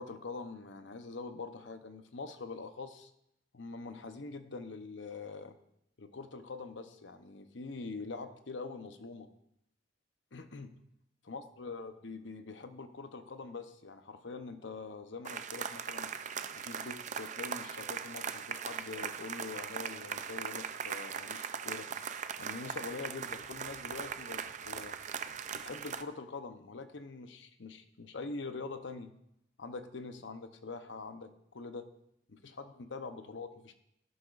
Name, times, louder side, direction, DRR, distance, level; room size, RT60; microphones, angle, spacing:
voice 1, 0.0-3.1 3.5-5.5 6.0-9.3 10.3-10.7 11.3-16.1 16.5-21.9 22.4-24.9 25.5-29.1 29.6-31.9 32.3-33.8, left 3 dB, 75° left, 8 dB, 0.8 m, -44 dB
sound 1, 15.2-26.0, right 7 dB, 40° right, 0.5 m, -40 dB
13.0 x 11.5 x 2.5 m, 0.76 s
head